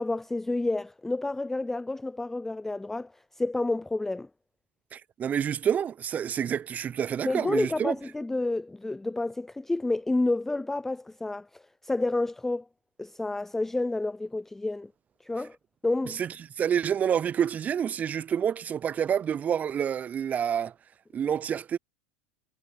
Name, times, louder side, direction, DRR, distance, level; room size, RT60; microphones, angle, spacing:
voice 1, 0.0-4.3 7.2-12.7 13.0-14.9 15.2-15.6 15.8-16.2, left 2 dB, 5° left, 0.3 m, -29 dB
voice 2, 4.9-7.9 16.1-20.7 21.1-21.8, right 8 dB, 30° right, 1.8 m, -28 dB
supercardioid pair, 125°, 5 cm